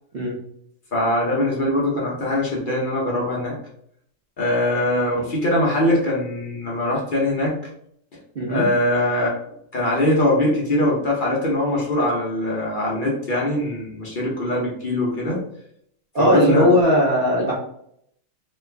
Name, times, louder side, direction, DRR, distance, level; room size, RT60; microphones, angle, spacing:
voice 1, 0.9-3.5 4.4-7.5 8.5-9.4 9.7-15.4 16.2-16.7, left 1 dB, 50° left, -3 dB, 0.6 m, -22 dB
voice 2, 8.3-8.7 16.1-17.5, equal, 75° right, -4 dB, 0.5 m, -18 dB
3.1 x 2.3 x 3.2 m, 0.70 s
omnidirectional pair, 1.8 m